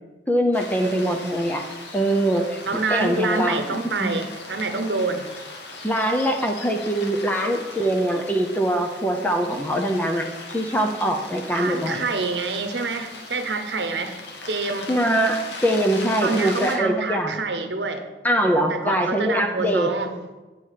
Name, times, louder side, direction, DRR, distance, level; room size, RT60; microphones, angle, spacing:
voice 1, 0.3-1.6 1.9-2.6 2.9-3.6 3.8-4.1 5.8-12.0 14.9-17.4 18.2-19.9, right 1 dB, 10° left, 3 dB, 0.6 m, -23 dB
sound 1, 0.5-16.8, left 3 dB, 80° left, 1.3 m, -38 dB
voice 2, 2.7-5.2 11.5-14.2 14.5-14.9 16.2-18.0 18.7-20.1, right 3 dB, 75° right, 7 dB, 0.9 m, -27 dB
8.5 x 5.0 x 5.6 m, 1.2 s
head